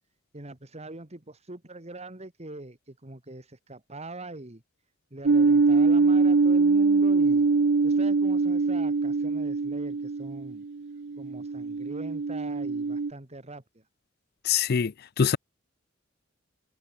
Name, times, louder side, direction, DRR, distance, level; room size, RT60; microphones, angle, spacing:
voice 1, 0.3-4.6 5.1-7.5 7.8-10.6 11.2-13.8, right 2 dB, 35° right, 2.1 m, -42 dB
sound 1, 5.3-13.1, right 4 dB, 60° right, 0.6 m, -23 dB
voice 2, 14.4-15.4, left 7 dB, 50° left, 0.5 m, -24 dB
head